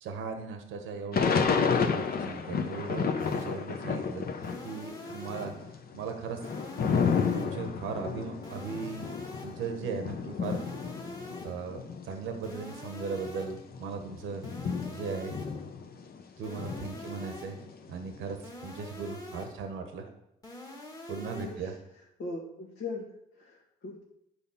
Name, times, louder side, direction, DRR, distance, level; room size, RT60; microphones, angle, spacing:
voice 1, 0.0-6.4 7.3-9.1 9.4-10.6 11.4-14.4 14.9-15.4 16.4-17.6 17.9-20.0 21.1-21.7, right 5 dB, 85° right, 5 dB, 1.0 m, -38 dB
Thunder / Rain, 1.1-4.8 5.1-12.1 12.7-12.8 13.0-16.2 16.6-18.3, left 6 dB, 50° left, 0.9 m, -31 dB
sound 1, 3.2-3.7 4.4-5.7 6.4-7.7 8.4-9.7 10.4-11.7 12.4-13.7 14.4-15.7 16.4-17.7 18.4-19.7 20.4-21.7, left 1 dB, 20° left, 1.5 m, -45 dB
voice 2, 21.4-21.8 22.2-24.0, left 3 dB, 70° left, -4 dB, 1.6 m, -40 dB
10.0 x 4.1 x 5.7 m, 0.81 s
cardioid pair, 90°, 20 cm